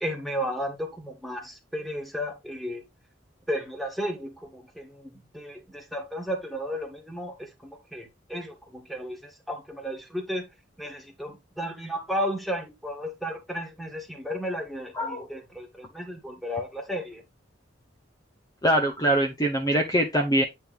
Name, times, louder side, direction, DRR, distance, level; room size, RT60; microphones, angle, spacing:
voice 1, 0.0-2.8 3.5-10.4 10.8-17.2, equal, ahead, 1.7 m, -34 dB
voice 2, 15.0-15.3 18.6-20.4, right 1 dB, 20° left, 0.8 m, -23 dB
8.7 x 4.4 x 3.5 m
head